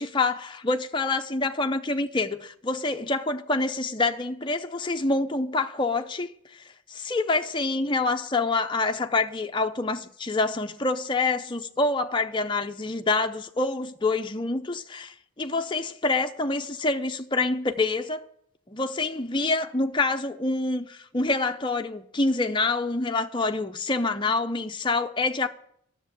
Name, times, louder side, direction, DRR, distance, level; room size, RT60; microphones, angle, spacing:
voice 1, 0.0-6.3 6.9-18.2 18.7-25.5, left 3 dB, 20° left, 0.6 m, -26 dB
10.5 x 7.4 x 9.1 m
head